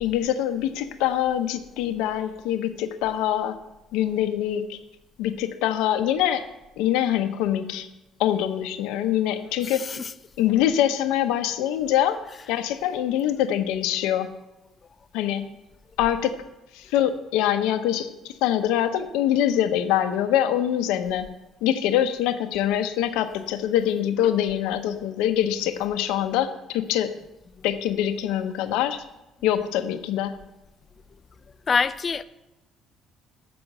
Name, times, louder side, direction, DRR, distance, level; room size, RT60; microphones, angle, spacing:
voice 1, 0.0-3.5 3.9-4.8 5.2-6.4 6.8-7.9 8.2-9.8 10.4-12.2 12.5-14.3 15.1-15.5 16.0-16.3 16.7-21.3 21.6-27.1 27.6-29.0 29.4-30.4, left 11 dB, 80° left, 0.6 m, -24 dB
voice 2, 9.6-10.1 27.6-27.7 31.7-32.2, left 5 dB, 40° left, 0.4 m, -26 dB
6.9 x 6.1 x 6.4 m
hypercardioid pair, 65°, 0 cm